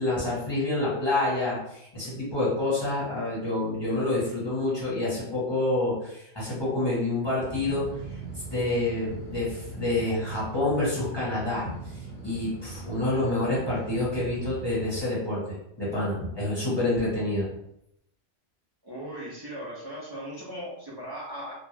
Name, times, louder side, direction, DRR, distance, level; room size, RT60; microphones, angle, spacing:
voice 1, 0.0-7.8 8.1-8.2 8.5-11.7 12.2-17.5, left 2 dB, 25° left, -8 dB, 1.3 m, -28 dB
sound 1, 7.4-15.0, right 3 dB, 50° left, 0.9 m, -40 dB
voice 2, 18.8-21.5, equal, 30° right, -7 dB, 0.4 m, -38 dB
2.4 x 2.1 x 3.2 m, 0.77 s
omnidirectional pair, 1.2 m